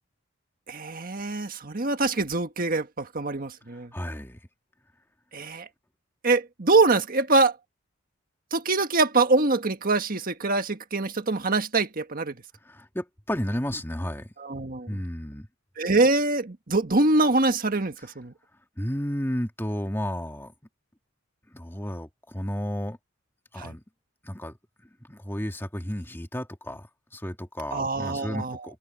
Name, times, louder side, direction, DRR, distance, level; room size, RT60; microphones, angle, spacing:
voice 1, 0.7-3.9 5.3-5.7 6.2-7.5 8.5-12.3 14.4-14.9 15.8-18.3 23.6-23.7 27.7-28.6, right 3 dB, 45° right, 1.6 m, -24 dB
voice 2, 3.9-4.4 12.6-14.3 14.9-15.5 18.8-20.5 21.5-23.0 23.5-23.8 24.2-24.6 25.0-26.9 27.1-28.8, equal, 10° left, 2.2 m, -32 dB
head